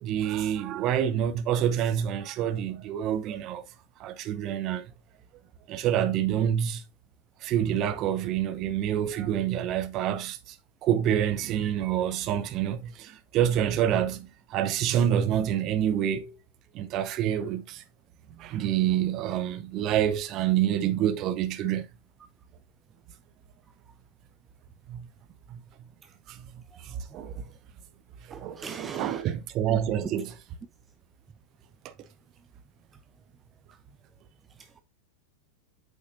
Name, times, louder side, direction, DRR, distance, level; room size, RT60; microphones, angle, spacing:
voice 1, 0.0-3.6 4.0-4.9 5.7-6.8 7.4-10.6 10.8-16.4 16.7-17.8 18.4-21.9 24.9-25.1 25.5-25.6 26.3-27.5 28.3-30.3 31.8-31.9, right 10 dB, 35° right, 0.8 m, -27 dB
voice 2, 28.3-29.3 29.7-29.8 34.6-34.8, right 5 dB, 15° right, 0.4 m, -39 dB
8.4 x 5.3 x 2.6 m
figure-of-eight pair, 90°, 0 cm